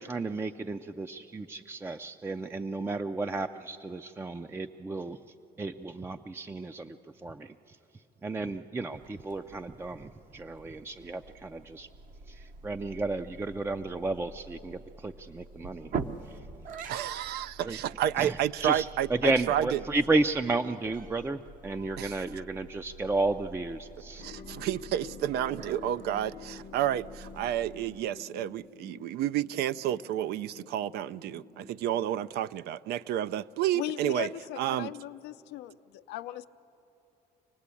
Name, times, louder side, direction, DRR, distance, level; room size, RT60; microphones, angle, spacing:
voice 1, 0.0-5.2 5.6-7.8 8.2-11.9 12.3-15.9 16.3-16.4 17.6-17.8 18.2-24.3, right 3 dB, 15° right, 0.4 m, -33 dB
sound 1, 8.9-28.1, right 4 dB, 50° right, 0.9 m, -45 dB
voice 2, 16.9-19.8 22.0-22.2 24.2-34.3 34.6-34.9, right 11 dB, 75° right, 0.4 m, -30 dB
sound 2, 24.2-32.3, left 6 dB, 50° left, 0.8 m, -49 dB
voice 3, 33.7-36.5, left 14 dB, 85° left, 0.6 m, -38 dB
25.5 x 18.5 x 8.4 m
cardioid pair, 110°, 17 cm